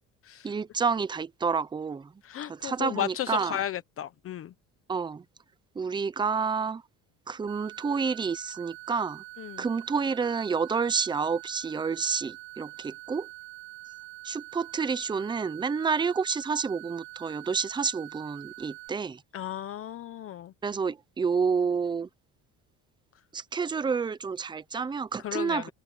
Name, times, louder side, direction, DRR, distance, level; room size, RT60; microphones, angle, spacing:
voice 1, 0.4-2.1 2.5-3.6 4.9-5.2 5.8-6.8 7.3-9.2 9.6-13.3 14.2-19.2 20.6-22.1 23.3-25.7, right 5 dB, 15° right, 0.6 m, -29 dB
voice 2, 2.2-4.5 9.4-9.6 19.3-20.5 25.2-25.7, left 11 dB, 45° left, 1.0 m, -34 dB
sound 1, 7.5-18.9, right 24 dB, 80° right, 5.3 m, -45 dB
cardioid pair, 140°, 32 cm